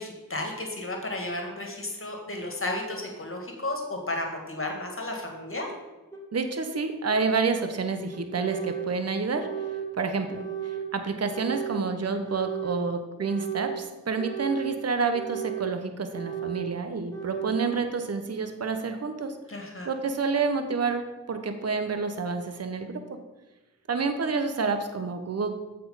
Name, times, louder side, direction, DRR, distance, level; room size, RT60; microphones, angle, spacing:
voice 1, 0.0-5.7 19.5-19.9, left 1 dB, 40° left, 1 dB, 2.0 m, -33 dB
sound 1, 6.1-6.2 7.1-7.2 8.1-8.9 9.3-9.9 10.3-10.9 11.3-11.8 12.2-12.8 13.2-13.8 14.2-14.7 15.1-15.7 16.1-16.7 17.1-17.7, right 9 dB, 10° left, 2.1 m, -34 dB
voice 2, 6.3-9.5 10.0-19.3 19.8-23.0 23.9-25.5, right 4 dB, 45° right, 7 dB, 0.9 m, -29 dB
7.4 x 4.3 x 5.5 m, 1.1 s
cardioid pair, 40°, 34 cm